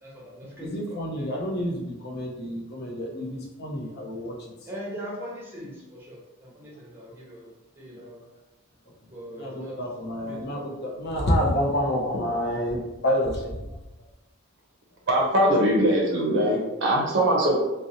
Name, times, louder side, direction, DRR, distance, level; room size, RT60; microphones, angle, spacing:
voice 1, 0.0-1.4 4.7-6.2 6.5-7.5 7.8-8.2 9.1-9.8 10.2-10.8, equal, 10° right, -5 dB, 0.7 m, -41 dB
voice 2, 0.6-4.4 9.4-13.6, equal, 50° left, -1 dB, 0.6 m, -28 dB
voice 3, 15.1-17.6, right 1 dB, 55° right, -2 dB, 0.5 m, -21 dB
2.6 x 2.0 x 2.7 m, 1.0 s
head